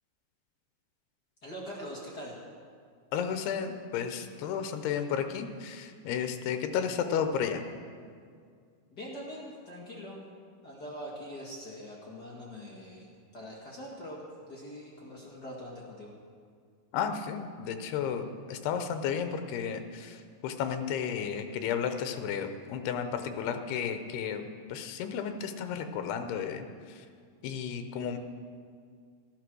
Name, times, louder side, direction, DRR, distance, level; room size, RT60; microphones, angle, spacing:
voice 1, 1.4-2.3 8.9-10.2 10.6-14.2 14.5-16.1, equal, 35° left, -4 dB, 1.7 m, -43 dB
voice 2, 3.1-7.7 16.9-20.2 20.4-24.4 24.7-26.7 27.4-28.2, left 7 dB, 90° left, 7 dB, 2.9 m, -33 dB
13.5 x 12.5 x 6.2 m, 2.1 s
omnidirectional pair, 4.5 m